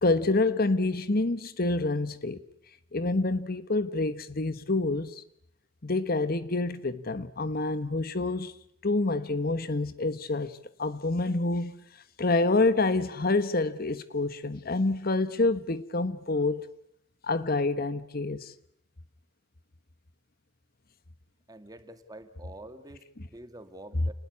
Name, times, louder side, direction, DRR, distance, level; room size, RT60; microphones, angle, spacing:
voice 1, 0.0-2.4 2.9-5.2 5.8-11.8 12.2-16.7 17.2-18.5, left 2 dB, 50° left, 1.2 m, -27 dB
voice 2, 21.5-24.1, right 1 dB, 20° right, 2.4 m, -47 dB
29.5 x 20.5 x 9.7 m
head